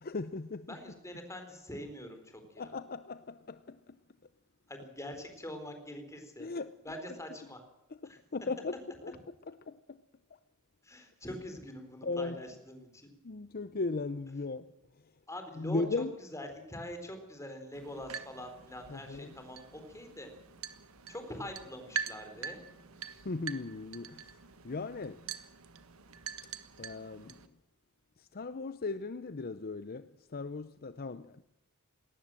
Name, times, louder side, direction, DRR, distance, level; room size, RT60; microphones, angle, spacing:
voice 1, 0.0-0.8 2.6-4.0 6.4-6.7 7.9-10.0 12.0-12.4 13.2-14.7 15.6-16.1 18.9-19.3 23.2-25.3 26.8-27.5 28.2-31.4, left 3 dB, 45° left, 0.7 m, -38 dB
voice 2, 0.7-2.7 4.7-6.5 6.8-7.6 8.0-8.2 10.8-13.1 15.3-20.3 21.1-22.6, left 1 dB, 15° left, 4.0 m, -44 dB
sound 1, 17.7-27.5, right 6 dB, 75° right, 1.5 m, -44 dB
20.5 x 18.5 x 7.6 m
head